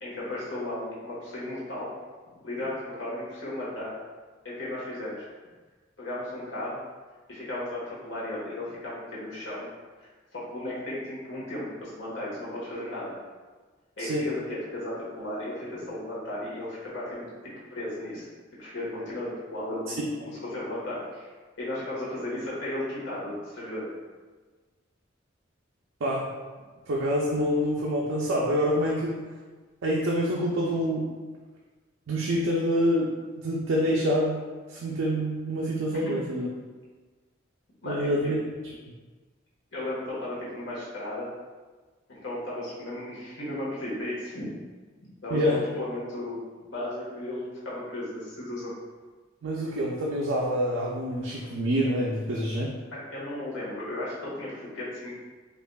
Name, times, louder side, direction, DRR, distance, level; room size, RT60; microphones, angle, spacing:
voice 1, 0.0-1.9 2.4-3.9 4.4-5.3 6.0-6.8 7.3-9.7 10.0-13.2 14.0-17.3 17.7-18.3 18.6-21.3 21.6-23.9 35.9-36.2 37.8-38.3 39.7-41.3 42.1-44.5 45.2-48.7 52.9-55.1, left 1 dB, 70° left, -8 dB, 1.3 m, -35 dB
voice 2, 26.0-26.3 26.9-29.2 29.8-31.1 32.1-33.1 33.4-34.4 34.7-36.5 37.8-38.4 45.3-45.6 49.4-52.7, equal, 85° right, -4 dB, 0.5 m, -26 dB
4.7 x 2.5 x 2.3 m, 1.4 s
head